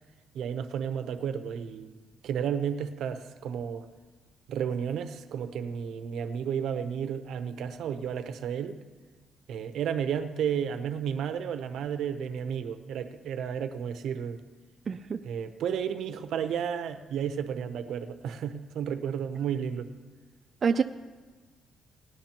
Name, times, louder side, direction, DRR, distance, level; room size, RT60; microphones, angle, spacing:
voice 1, 0.3-1.9 2.2-3.8 4.5-8.8 9.5-14.4 15.2-19.9, right 8 dB, 75° right, 9 dB, 0.8 m, -32 dB
voice 2, 14.9-15.2 20.6-20.8, right 6 dB, 45° right, 5 dB, 0.4 m, -26 dB
19.5 x 11.0 x 3.0 m, 1.3 s
cardioid pair, 90°, 0 cm